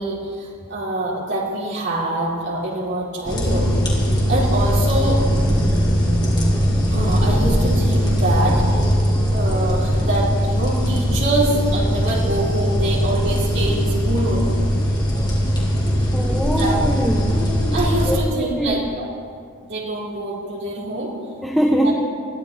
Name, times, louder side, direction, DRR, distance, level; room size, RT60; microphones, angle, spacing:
voice 1, 0.0-3.7 4.3-5.2 6.9-8.6 9.3-14.5 16.6-16.8 17.7-19.0 19.6-21.1 21.8-21.9, right 1 dB, 60° right, -6 dB, 4.2 m, -25 dB
sound 1, 3.3-18.2, equal, 20° left, 3.2 m, -20 dB
voice 2, 16.1-17.4 18.1-18.8 21.4-21.9, equal, ahead, -1 dB, 1.1 m, -22 dB
21.5 x 14.0 x 4.2 m, 2.2 s
head